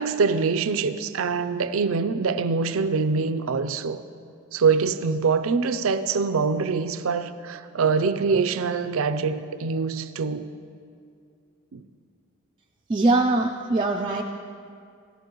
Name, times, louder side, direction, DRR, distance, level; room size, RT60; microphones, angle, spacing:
voice 1, 0.0-4.0 4.5-10.5 11.7-11.8, right 5 dB, 80° right, 12 dB, 0.5 m, -24 dB
voice 2, 12.9-14.2, right 2 dB, 25° right, 1 dB, 0.4 m, -22 dB
14.5 x 13.0 x 3.0 m, 2.4 s
head